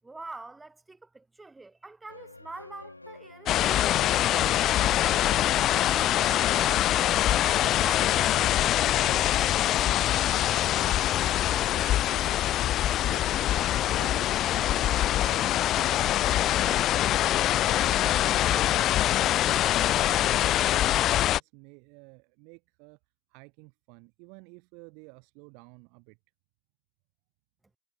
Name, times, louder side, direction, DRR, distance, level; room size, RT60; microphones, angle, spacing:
voice 1, 0.0-7.2 7.4-12.3, right 3 dB, 10° right, 7.5 m, -47 dB
sound 1, 2.1-21.2, left 2 dB, 85° left, 6.2 m, -49 dB
sound 2, 3.5-21.4, left 13 dB, 30° left, 0.4 m, -24 dB
voice 2, 13.8-23.0 23.3-26.2, right 38 dB, 45° right, 2.8 m, -50 dB
figure-of-eight pair, 90°, 0 cm